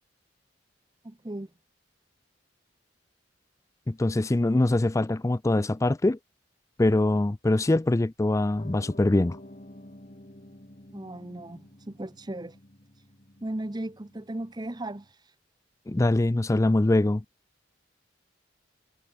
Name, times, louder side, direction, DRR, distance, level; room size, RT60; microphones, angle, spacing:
voice 1, 1.0-1.5 10.9-12.6 13.4-15.2, right 1 dB, 20° right, 0.8 m, -36 dB
voice 2, 3.9-6.2 6.8-9.4 15.9-17.2, left 2 dB, 15° left, 0.4 m, -23 dB
Piano, 8.6-15.1, left 1 dB, 40° left, 2.7 m, -50 dB
head